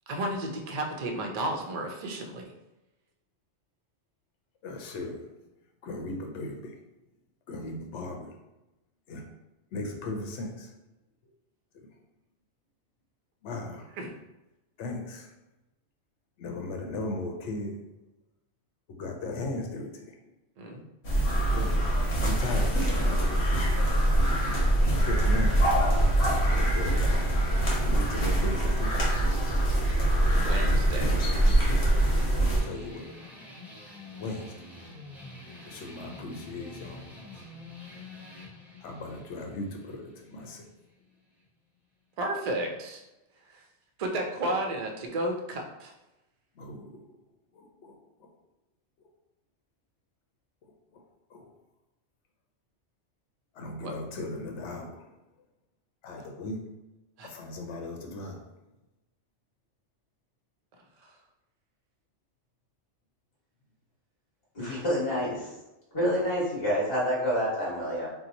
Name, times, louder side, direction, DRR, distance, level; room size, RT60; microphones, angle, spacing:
voice 1, 0.1-2.4 14.0-14.1 20.6-20.8 30.0-31.2 42.2-43.0 43.5-43.7 44.0-45.9 53.8-53.9 57.2-57.3 61.0-61.1, right 1 dB, 55° right, 2 dB, 0.4 m, -33 dB
voice 2, 4.6-5.2 5.8-6.8 7.5-8.3 9.1-9.2 9.7-10.7 11.7-11.9 13.4-13.9 14.8-15.3 16.4-17.8 18.9-20.2 21.5-21.9 22.2-23.4 24.9-25.7 26.5-27.2 27.8-28.9 32.6-33.2 34.2-34.7 35.6-37.1 38.8-40.7 46.6-47.1 47.5-48.3 50.9-51.0 51.3-51.5 53.5-55.1 56.0-56.6 57.2-58.4, left 2 dB, 80° left, 3 dB, 0.9 m, -37 dB
sound 1, 21.0-32.6, right 1 dB, 65° left, 1.1 m, -24 dB
sound 2, 32.4-41.5, left 2 dB, ahead, 0.5 m, -47 dB
voice 3, 64.5-65.5 65.9-68.1, equal, 25° left, -8 dB, 1.2 m, -28 dB
2.8 x 2.1 x 3.8 m, 0.98 s
omnidirectional pair, 1.2 m